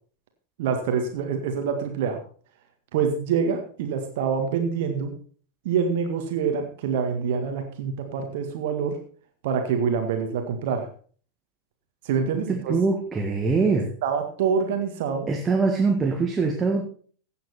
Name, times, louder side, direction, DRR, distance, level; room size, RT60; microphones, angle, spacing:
voice 1, 0.6-2.2 2.9-5.1 5.7-9.0 9.4-10.9 12.1-12.8 14.0-15.3, right 6 dB, 50° right, 5 dB, 1.8 m, -26 dB
voice 2, 12.5-13.9 15.3-16.9, right 4 dB, 15° right, 3 dB, 1.6 m, -23 dB
16.0 x 8.0 x 4.3 m, 0.43 s
figure-of-eight pair, 90°, 0 cm